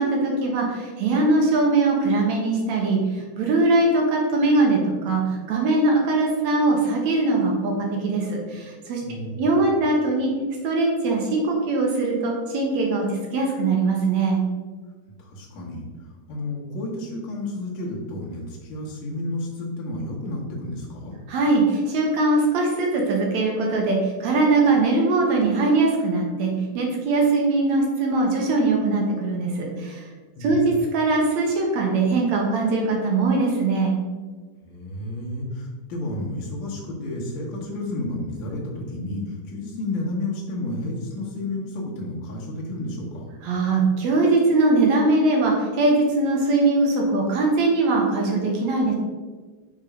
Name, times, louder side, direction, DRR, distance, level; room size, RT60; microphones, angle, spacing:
voice 1, 0.0-7.7 8.0-9.0 9.4-10.3 10.6-14.4 21.3-30.1 30.4-34.0 43.4-48.9, right 3 dB, 70° right, 0 dB, 2.1 m, -21 dB
voice 2, 9.0-9.5 15.2-21.2 30.3-30.7 34.6-43.3, left 1 dB, 50° left, -3 dB, 1.6 m, -31 dB
5.3 x 4.4 x 5.0 m, 1.4 s
omnidirectional pair, 3.6 m